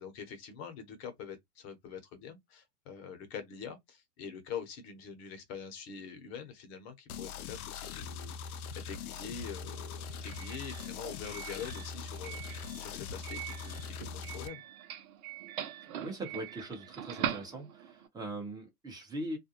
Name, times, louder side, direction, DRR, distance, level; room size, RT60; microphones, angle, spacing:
voice 1, 0.0-14.6, left 7 dB, 45° left, 1.0 m, -45 dB
sound 1, 7.1-14.5, left 6 dB, 70° left, 0.6 m, -42 dB
Doorbell, 9.0-18.1, right 10 dB, 65° right, 0.8 m, -43 dB
voice 2, 16.0-19.4, right 1 dB, 10° right, 0.9 m, -40 dB
2.5 x 2.2 x 2.9 m
hypercardioid pair, 125°, 46 cm